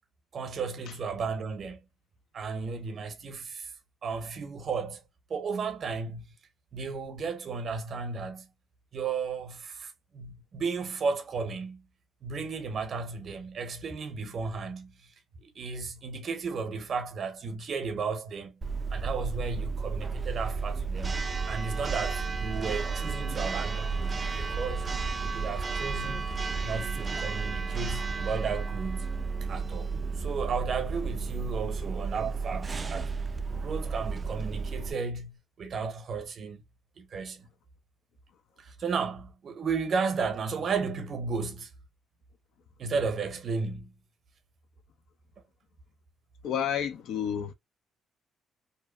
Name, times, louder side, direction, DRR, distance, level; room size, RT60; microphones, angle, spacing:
voice 1, 0.3-1.8 2.3-3.7 4.0-5.0 5.3-6.2 6.7-8.5 8.9-11.8 12.2-15.1 15.4-18.6 18.9-21.2 21.5-24.9 25.2-26.3 26.6-29.1 29.4-33.1 33.5-36.6 37.0-37.5 38.6-41.7 42.8-43.9, right 5 dB, 55° right, 0.7 m, -34 dB
Church bell, 18.6-34.9, right 4 dB, 30° right, 0.3 m, -32 dB
voice 2, 46.4-47.5, left 9 dB, 80° left, 0.4 m, -30 dB
2.7 x 2.1 x 2.2 m
cardioid pair, 90°, 0 cm